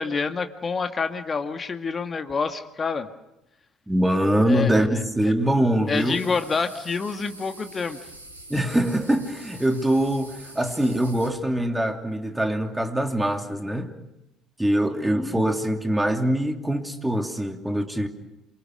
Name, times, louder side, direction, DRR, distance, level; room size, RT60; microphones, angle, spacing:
voice 1, 0.0-3.1 4.5-4.7 5.2-5.3 5.9-8.0 14.9-15.4, left 5 dB, 30° left, 7 dB, 1.9 m, -27 dB
voice 2, 3.9-6.2 8.5-13.9 14.6-18.1, right 1 dB, 10° right, 5 dB, 3.0 m, -23 dB
sound 1, 5.9-11.3, right 1 dB, 90° right, 2.9 m, -45 dB
28.0 x 24.0 x 6.4 m, 0.89 s
figure-of-eight pair, 55°, 0 cm